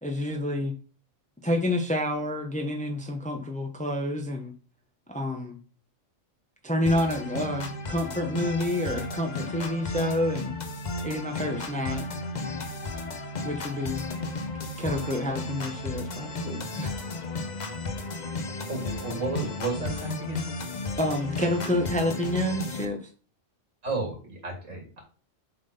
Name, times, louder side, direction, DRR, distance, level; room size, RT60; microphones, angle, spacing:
voice 1, 0.0-0.7 1.4-4.5 5.1-5.6 6.6-10.5 11.0-12.0 13.4-14.0 14.8-17.2 21.0-23.1, left 1 dB, 5° left, 4 dB, 0.9 m, -29 dB
sound 1, 6.9-22.9, left 2 dB, 40° left, 0.8 m, -34 dB
voice 2, 18.7-20.5 23.8-25.0, right 3 dB, 80° right, 1 dB, 3.3 m, -32 dB
7.1 x 3.8 x 5.4 m, 0.37 s
omnidirectional pair, 1.3 m